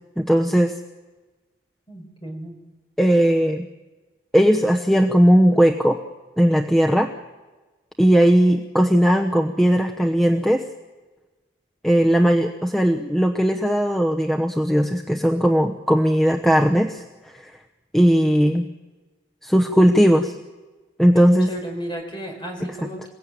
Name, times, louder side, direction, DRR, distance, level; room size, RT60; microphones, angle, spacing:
voice 1, 0.2-0.8 3.0-3.7 4.3-6.0 6.4-7.1 8.0-10.6 11.8-17.5 17.9-18.7 19.4-20.3 21.0-21.5, equal, ahead, 2 dB, 0.9 m, -18 dB
voice 2, 1.9-2.6 21.1-23.1, right 1 dB, 25° left, 2 dB, 5.3 m, -34 dB
28.0 x 17.0 x 9.0 m, 1.2 s
head